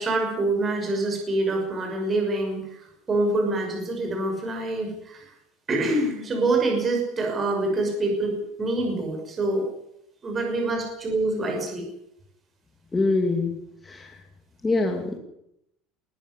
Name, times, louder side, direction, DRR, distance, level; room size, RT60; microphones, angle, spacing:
voice 1, 0.0-2.8 3.1-5.2 5.7-9.6 10.2-11.9, right 2 dB, 20° right, 2 dB, 6.2 m, -26 dB
voice 2, 12.9-13.5 13.9-14.1 14.6-15.2, left 3 dB, 10° left, 3 dB, 2.4 m, -23 dB
20.5 x 14.5 x 10.0 m, 0.78 s
cardioid pair, 165°, 0 cm